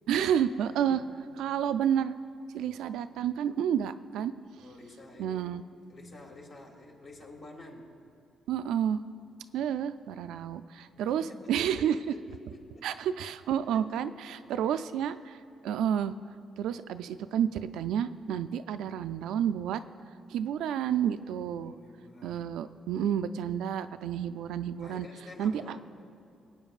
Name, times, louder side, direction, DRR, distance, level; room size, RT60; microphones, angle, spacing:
voice 1, 0.1-1.0 1.4-2.1 2.5-4.3 5.2-5.6 8.5-9.0 9.5-11.9 12.8-15.4 15.6-16.1 16.6-19.8 20.3-21.7 22.2-25.1 25.4-25.8, right 9 dB, 85° right, 11 dB, 0.3 m, -30 dB
voice 2, 0.6-1.0 1.3-1.4 4.6-5.6 5.9-7.9 10.9-12.9 13.7-13.9 14.2-14.9 21.6-22.7 24.8-25.9, left 2 dB, 50° left, 1 dB, 1.9 m, -50 dB
22.0 x 8.9 x 2.4 m, 2.4 s
cardioid pair, 90°, 0 cm